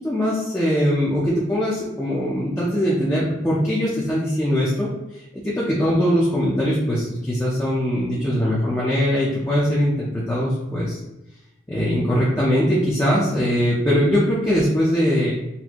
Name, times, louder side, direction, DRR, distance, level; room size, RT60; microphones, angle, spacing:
voice 1, 0.0-11.0 11.7-15.3, equal, 10° left, -7 dB, 0.5 m, -21 dB
4.1 x 2.5 x 2.9 m, 0.94 s
head